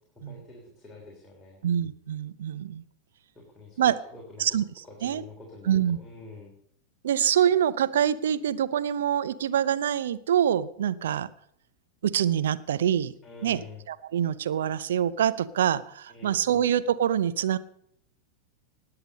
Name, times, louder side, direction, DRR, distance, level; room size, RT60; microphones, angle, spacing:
voice 1, 0.3-1.6 3.3-4.5 4.8-6.5 13.2-13.8 16.1-16.6, left 3 dB, 10° left, -3 dB, 3.4 m, -47 dB
voice 2, 1.6-2.8 3.8-4.0 4.4-4.6 5.0-5.2 5.7-6.0 7.0-11.3 12.0-13.1 13.4-17.6, right 9 dB, 60° right, 14 dB, 0.7 m, -25 dB
19.0 x 6.9 x 6.4 m, 0.66 s
figure-of-eight pair, 90°, 0 cm